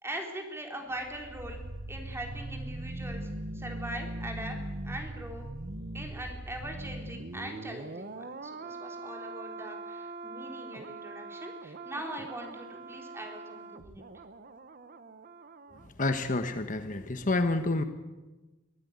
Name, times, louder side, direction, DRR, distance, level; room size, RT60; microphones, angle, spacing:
voice 1, 0.0-1.6 1.9-3.3 3.5-4.5 4.8-5.4 5.9-14.0, right 1 dB, 15° right, 2 dB, 3.9 m, -41 dB
sound 1, 0.9-15.9 16.1-16.3, right 2 dB, 50° right, 1.1 m, -41 dB
voice 2, 16.0-17.8, left 2 dB, 40° left, 8 dB, 1.3 m, -28 dB
24.0 x 15.5 x 9.6 m, 1.2 s
head